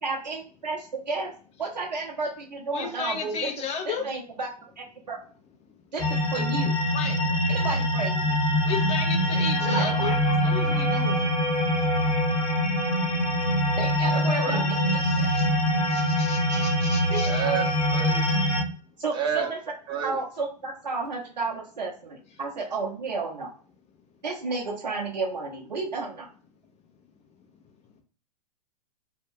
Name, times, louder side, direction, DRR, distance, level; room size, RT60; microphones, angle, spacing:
voice 1, 0.0-1.3 1.6-3.5 3.9-5.2 5.9-6.8 7.5-8.3 9.6-10.1 13.8-15.3 17.1-17.2 19.0-19.6 20.0-23.5 24.2-26.3, right 3 dB, 85° right, -2 dB, 0.6 m, -32 dB
voice 2, 2.7-4.1 6.9-7.4 8.6-10.1 10.4-11.4 13.4-13.5 15.0-15.5 15.9-17.4 18.2-18.3, left 6 dB, 30° left, 3 dB, 0.8 m, -34 dB
sound 1, 6.0-18.6, equal, 10° left, 1.1 m, -24 dB
voice 3, 14.1-14.6 17.3-18.2 19.1-19.5 19.9-20.2, right 7 dB, 20° right, 3 dB, 0.6 m, -30 dB
2.7 x 2.3 x 3.5 m, 0.40 s
figure-of-eight pair, 100°, 21 cm